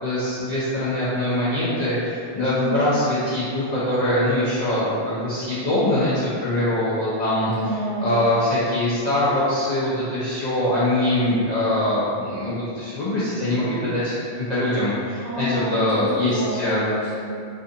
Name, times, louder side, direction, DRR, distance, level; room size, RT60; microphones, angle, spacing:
voice 1, 0.0-7.5 8.0-16.8, left 1 dB, 55° left, -10 dB, 0.5 m, -23 dB
voice 2, 2.4-2.8 7.5-8.3 11.2-11.5 15.2-17.5, left 1 dB, 50° right, -10 dB, 0.8 m, -29 dB
2.5 x 2.4 x 2.6 m, 2.4 s
omnidirectional pair, 1.1 m